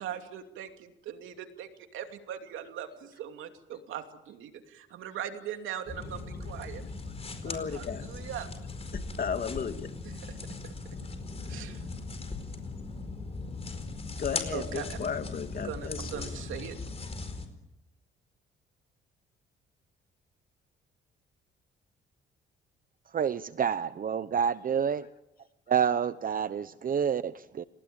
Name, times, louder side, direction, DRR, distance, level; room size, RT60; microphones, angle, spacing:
voice 1, 0.0-6.8 7.4-8.5 10.0-10.2 11.5-11.8 14.5-15.0 15.6-16.8, right 9 dB, 85° right, 6 dB, 2.7 m, -40 dB
sound 1, 5.9-17.5, left 3 dB, 30° left, 4.7 m, -39 dB
voice 2, 7.4-8.1 9.2-9.9 14.2-16.3, left 6 dB, 45° left, 8 dB, 2.2 m, -34 dB
voice 3, 23.1-25.1 25.7-27.6, right 7 dB, 45° right, 14 dB, 0.8 m, -28 dB
30.0 x 19.0 x 8.8 m, 0.96 s
cardioid pair, 90°, 20 cm